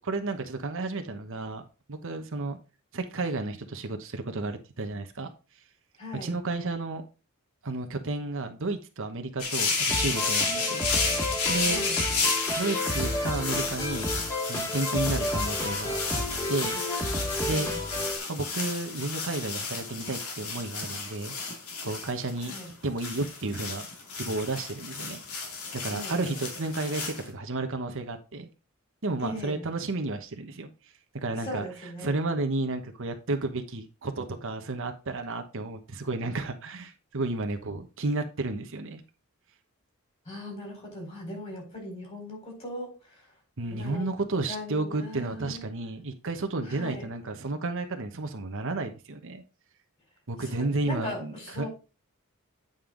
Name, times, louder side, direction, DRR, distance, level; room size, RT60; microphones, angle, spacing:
voice 1, 0.0-1.6 1.9-2.6 2.9-5.3 6.2-7.0 7.6-10.8 11.5-11.8 12.6-14.2 14.5-16.8 17.4-17.7 18.3-21.4 21.8-22.5 22.8-23.9 24.1-25.2 25.8-28.5 29.0-30.7 31.1-31.7 32.0-39.0 43.6-49.4 50.3-51.7, right 2 dB, 60° right, 1.1 m, -32 dB
voice 2, 6.0-6.3 11.6-12.0 17.5-17.8 22.5-22.7 25.9-26.4 29.2-29.6 31.3-32.3 40.3-43.2 43.7-44.1 44.5-45.7 46.7-47.1 50.4-51.7, left 1 dB, 30° left, 4.2 m, -39 dB
sound 1, 9.4-27.2, left 4 dB, 90° left, 2.4 m, -32 dB
sound 2, 9.9-18.2, left 1 dB, 15° left, 1.9 m, -31 dB
9.0 x 5.4 x 3.8 m
head